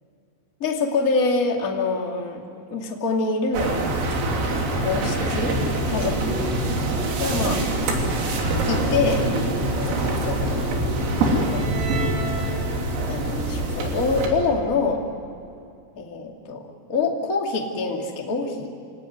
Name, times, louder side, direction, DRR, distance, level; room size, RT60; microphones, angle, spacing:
voice 1, 0.6-2.4 2.7-3.8 4.4-5.6 5.9-6.4 7.2-7.6 8.5-9.3 9.7-10.8 11.1-11.7 13.1-15.0 15.9-18.7, left 3 dB, 30° left, 0 dB, 1.5 m, -26 dB
sound 1, 3.5-14.3, right 1 dB, 85° right, 5.5 m, -24 dB
27.5 x 18.0 x 9.5 m, 2.6 s
omnidirectional pair, 5.8 m